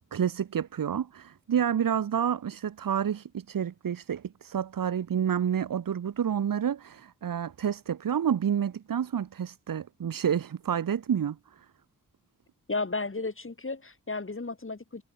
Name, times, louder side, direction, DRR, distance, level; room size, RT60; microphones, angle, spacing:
voice 1, 0.1-11.4, right 8 dB, 80° right, 1.8 m, -29 dB
voice 2, 12.7-15.0, left 3 dB, 40° left, 7.9 m, -33 dB
cardioid pair, 50°, 33 cm